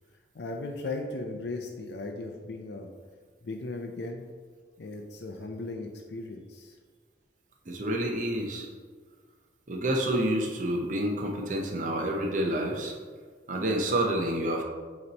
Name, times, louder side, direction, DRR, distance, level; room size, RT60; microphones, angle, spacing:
voice 1, 0.3-2.9 3.4-4.3 4.8-6.8, left 2 dB, 65° left, 2 dB, 0.5 m, -37 dB
voice 2, 7.7-8.7 9.7-12.9 13.5-14.6, right 1 dB, 45° right, 1 dB, 0.7 m, -28 dB
8.4 x 3.0 x 4.0 m, 1.5 s
head